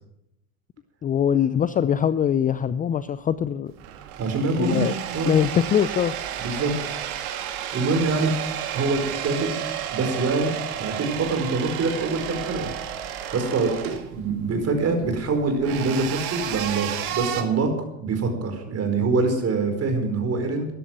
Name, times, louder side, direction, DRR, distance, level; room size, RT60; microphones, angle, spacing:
voice 1, 1.0-3.7 4.6-4.9 5.3-6.1 6.7-6.8, left 9 dB, 20° left, 15 dB, 0.5 m, -22 dB
sound 1, 3.7-17.4, right 10 dB, 70° right, 2.3 m, -32 dB
voice 2, 4.2-5.3 6.4-6.7 7.7-8.3 8.7-9.6 9.9-12.7 13.3-13.7 14.1-20.7, right 3 dB, 35° right, 6 dB, 4.7 m, -25 dB
14.0 x 11.0 x 7.5 m, 0.81 s
hypercardioid pair, 90°, 44 cm